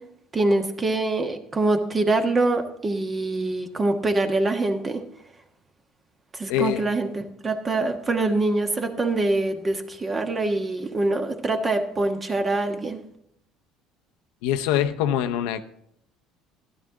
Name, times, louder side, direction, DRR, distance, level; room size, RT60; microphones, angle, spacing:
voice 1, 0.3-5.0 6.3-13.0, right 2 dB, 25° right, 6 dB, 1.3 m, -24 dB
voice 2, 6.5-6.9 14.4-15.6, left 11 dB, 80° left, 8 dB, 0.6 m, -24 dB
12.5 x 11.5 x 3.8 m, 0.73 s
supercardioid pair, 85°, 0 cm